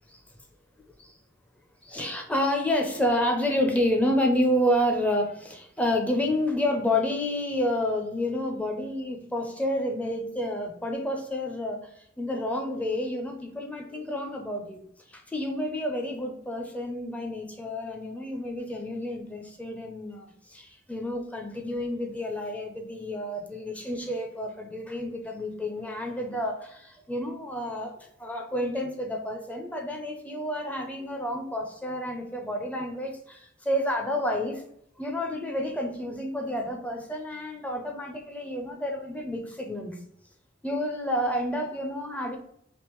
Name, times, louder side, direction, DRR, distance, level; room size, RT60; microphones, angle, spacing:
voice 1, 1.8-14.8 15.1-34.6 35.0-40.0 40.6-42.4, left 1 dB, 5° left, 2 dB, 0.4 m, -29 dB
3.4 x 2.8 x 3.0 m, 0.70 s
head